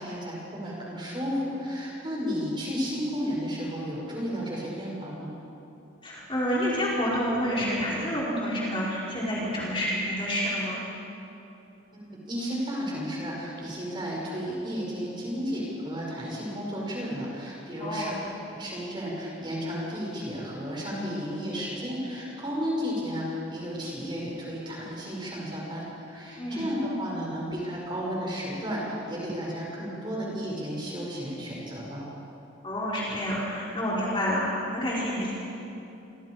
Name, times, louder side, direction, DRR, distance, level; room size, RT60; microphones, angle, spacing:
voice 1, 0.0-5.3 11.9-18.1 18.5-32.0, equal, 25° right, -4 dB, 6.6 m, -33 dB
voice 2, 6.0-10.8 17.8-18.2 26.4-26.6 32.6-35.3, equal, 25° left, -7 dB, 4.8 m, -28 dB
28.5 x 24.5 x 5.1 m, 2.9 s
head